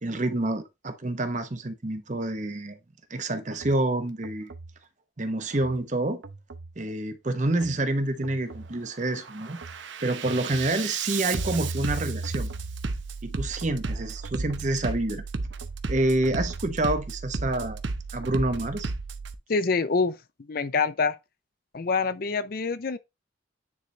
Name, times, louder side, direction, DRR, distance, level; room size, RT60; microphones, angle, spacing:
voice 1, 0.0-2.8 3.1-4.5 5.2-6.2 6.8-9.6 10.0-12.5 13.2-15.2 15.9-17.8 18.1-18.9, right 2 dB, 40° right, 0.9 m, -28 dB
Bass drum, 3.5-3.8 4.2-4.7 5.5-5.8 6.2-6.7 7.5-7.8 8.2-8.7 9.1-19.4, right 4 dB, 70° right, 0.7 m, -34 dB
voice 2, 19.5-21.2 21.7-23.0, left 4 dB, 50° left, 0.5 m, -26 dB
9.6 x 4.0 x 3.2 m
head